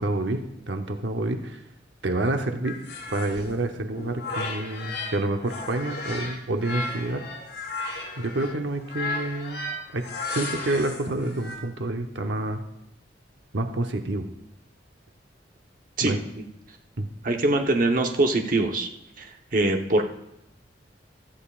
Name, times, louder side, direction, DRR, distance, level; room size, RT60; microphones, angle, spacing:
voice 1, 0.0-1.6 2.0-2.8 3.1-7.3 8.2-9.7 9.9-12.6 13.5-14.3 16.0-16.2 17.0-17.1, right 2 dB, 90° right, 5 dB, 0.9 m, -28 dB
sound 1, 2.6-5.2 5.4-11.6, left 2 dB, 65° left, 3.6 m, -34 dB
voice 2, 17.2-18.9 19.2-20.0, right 2 dB, 50° right, 3 dB, 1.0 m, -23 dB
15.5 x 13.5 x 2.5 m, 0.84 s
head